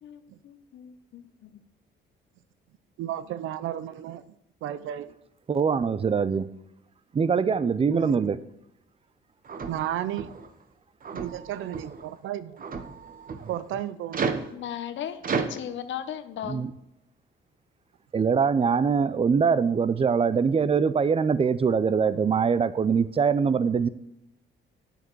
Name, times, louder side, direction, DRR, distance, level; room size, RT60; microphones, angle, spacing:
voice 1, 0.0-1.6 14.5-16.7, left 10 dB, 70° left, 0.9 m, -37 dB
voice 2, 3.0-4.2 4.6-5.1 7.9-8.2 9.7-10.3 11.1-12.6 13.3-14.3, right 11 dB, 80° right, 0.6 m, -33 dB
voice 3, 5.5-6.5 7.1-8.4 16.5-16.7 18.1-23.9, right 6 dB, 30° right, 0.5 m, -23 dB
sound 1, 9.5-10.5 11.0-12.0 12.6-13.6 14.1-14.5 15.2-15.5, right 5 dB, 45° right, 1.0 m, -32 dB
9.1 x 6.7 x 4.7 m
cardioid pair, 90°, 20 cm